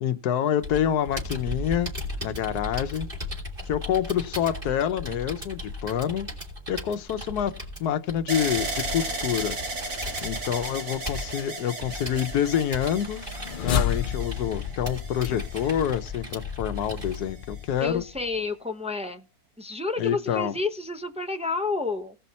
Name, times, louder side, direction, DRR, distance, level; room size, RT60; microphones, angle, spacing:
voice 1, 0.0-1.9 2.2-3.1 3.7-6.3 6.7-7.5 7.8-9.6 10.2-13.2 13.6-18.0 20.0-20.5, left 9 dB, 85° left, 1.3 m, -27 dB
Computer keyboard, 0.6-17.2, left 1 dB, 35° right, 3.5 m, -37 dB
sound 1, 8.3-16.3 17.0-17.6, right 2 dB, 70° right, 2.6 m, -35 dB
sound 2, 13.0-18.4, left 8 dB, 60° left, 0.5 m, -32 dB
voice 2, 17.8-19.2 19.6-22.2, left 3 dB, 5° right, 0.5 m, -30 dB
17.0 x 5.7 x 4.2 m
omnidirectional pair, 1.6 m